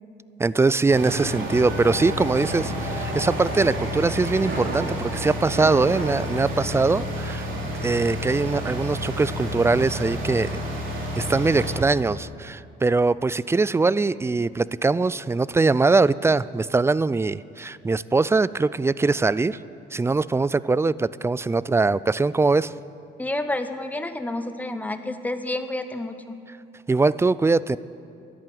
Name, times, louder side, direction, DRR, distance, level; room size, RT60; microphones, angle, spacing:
voice 1, 0.4-7.5 7.8-10.6 11.2-19.6 19.9-22.7 26.9-27.8, right 3 dB, 15° right, 19 dB, 0.3 m, -22 dB
sound 1, 0.9-11.8, equal, 80° right, 3.1 m, -30 dB
voice 2, 23.2-26.4, left 1 dB, 10° left, 8 dB, 1.0 m, -29 dB
13.5 x 11.0 x 9.3 m, 2.6 s
cardioid pair, 90°, 20 cm